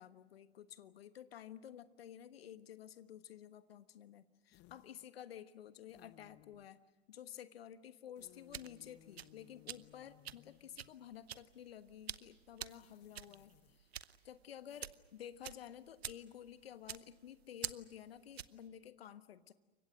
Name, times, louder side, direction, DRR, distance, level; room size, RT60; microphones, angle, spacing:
voice 1, 0.0-6.8 7.1-13.9 14.2-19.5, left 10 dB, 70° left, 12 dB, 1.4 m, -52 dB
sound 1, 4.5-5.1 5.9-6.8 8.2-11.1 12.7-13.8 14.7-14.8, left 16 dB, 35° left, 0.9 m, -65 dB
sound 2, 8.2-18.7, right 10 dB, 75° right, 0.9 m, -49 dB
29.0 x 24.5 x 6.4 m, 1.2 s
figure-of-eight pair, 90°, 32 cm